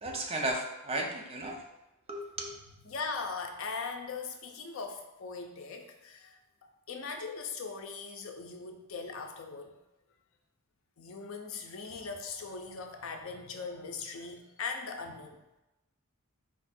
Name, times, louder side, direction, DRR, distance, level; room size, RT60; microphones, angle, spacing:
voice 1, 0.0-1.6 2.1-2.5, right 1 dB, 30° right, 1 dB, 0.6 m, -34 dB
voice 2, 2.8-6.4 6.9-9.7 11.0-15.4, left 4 dB, 70° left, 4 dB, 0.6 m, -40 dB
4.3 x 2.4 x 4.2 m, 0.97 s
head